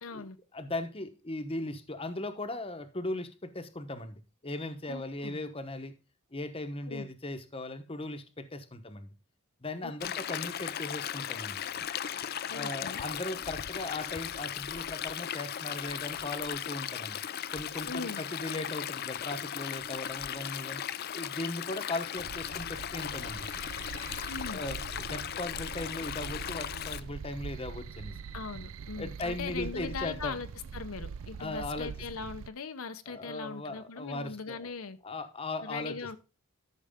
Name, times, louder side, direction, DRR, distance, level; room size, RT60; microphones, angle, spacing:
voice 1, 0.0-0.4 4.9-5.4 6.9-7.1 9.8-9.9 12.5-13.0 17.9-18.2 24.3-24.6 28.3-30.5 30.7-35.0 35.6-36.2, left 4 dB, 75° left, 0.8 m, -40 dB
voice 2, 0.5-5.9 6.3-9.1 9.6-11.6 12.5-17.2 17.5-20.8 21.1-23.5 24.5-28.1 29.0-30.4 31.4-31.9 33.1-34.7 35.0-36.2, left 2 dB, 25° left, 1.0 m, -38 dB
Stream, 10.0-27.0, left 9 dB, 45° left, 0.4 m, -37 dB
sound 1, 22.2-32.5, right 6 dB, 65° right, 0.4 m, -43 dB
12.5 x 6.2 x 3.6 m
head